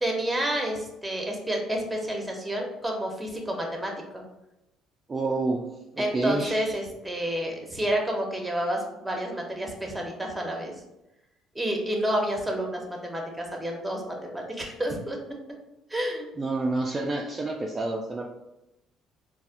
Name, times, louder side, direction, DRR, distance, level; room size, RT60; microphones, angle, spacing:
voice 1, 0.0-4.2 6.0-10.7 11.5-15.2 15.9-16.2, right 1 dB, 10° right, 1 dB, 0.8 m, -29 dB
voice 2, 5.1-5.7 5.9-6.7 16.4-18.3, right 2 dB, 30° right, 0 dB, 0.4 m, -28 dB
4.1 x 2.1 x 2.5 m, 0.90 s
supercardioid pair, 85°, 0 cm